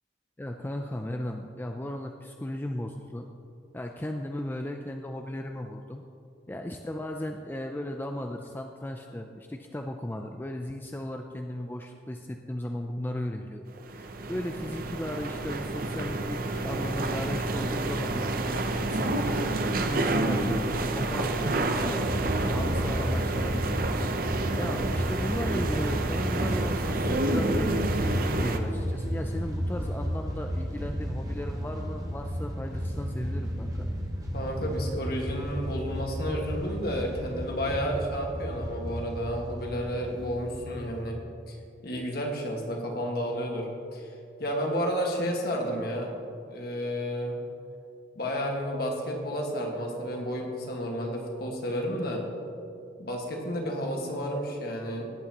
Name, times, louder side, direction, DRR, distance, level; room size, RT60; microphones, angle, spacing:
voice 1, 0.4-3.3 3.7-6.0 6.5-13.6 14.0-19.5 19.9-24.3 24.5-33.9, left 1 dB, 10° left, 4 dB, 0.3 m, -36 dB
sound 1, 13.8-28.6, right 2 dB, 50° right, 0.6 m, -29 dB
voice 2, 20.2-20.5 34.3-41.2 41.5-41.6 41.8-44.1 44.4-46.1 46.5-47.4 48.1-52.3 53.0-55.1, equal, 55° left, 0 dB, 1.6 m, -31 dB
sound 2, 22.0-41.0, equal, 20° right, 1.0 m, -33 dB
17.5 x 8.4 x 2.9 m, 2.6 s
head